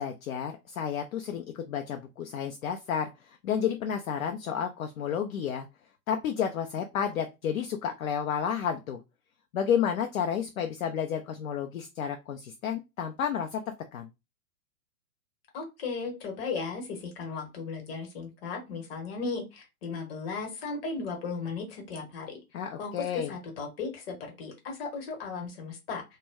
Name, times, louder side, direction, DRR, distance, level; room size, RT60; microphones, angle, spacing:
voice 1, 0.0-5.7 6.1-9.0 9.5-14.1 22.5-23.3, left 8 dB, 60° left, 5 dB, 0.5 m, -31 dB
voice 2, 15.5-22.4 22.8-26.0, left 4 dB, 40° left, 2 dB, 1.1 m, -36 dB
2.2 x 2.1 x 3.4 m, 0.25 s
hypercardioid pair, 125°, 46 cm